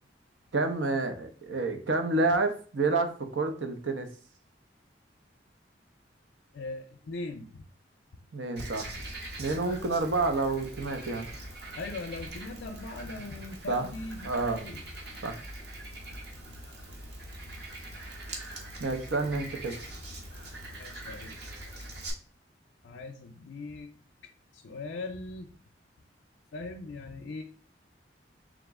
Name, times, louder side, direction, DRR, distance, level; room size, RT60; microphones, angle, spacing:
voice 1, 0.5-4.1 8.3-9.0 9.4-11.3 13.7-13.9 14.2-14.6 15.2-15.4 18.8-19.8, right 3 dB, 90° right, 7 dB, 0.7 m, -29 dB
voice 2, 6.5-7.7 11.8-14.8 20.8-21.4 22.8-23.9 24.5-25.5 26.5-27.4, left 3 dB, 75° left, 3 dB, 0.5 m, -40 dB
Frog, 8.6-22.1, right 1 dB, 60° right, 1.0 m, -42 dB
3.7 x 3.0 x 3.5 m, 0.42 s
head